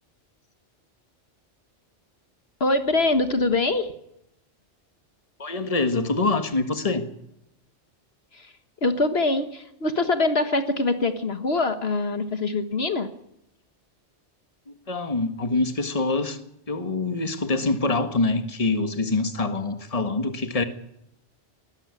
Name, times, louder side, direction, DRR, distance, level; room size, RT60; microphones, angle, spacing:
voice 1, 2.6-3.9 8.3-8.5 8.8-13.1, left 2 dB, 60° left, 1.6 m, -24 dB
voice 2, 5.4-7.1 14.7-16.4 16.7-20.6, left 3 dB, 30° left, 1.6 m, -25 dB
21.0 x 13.5 x 9.7 m
omnidirectional pair, 1.2 m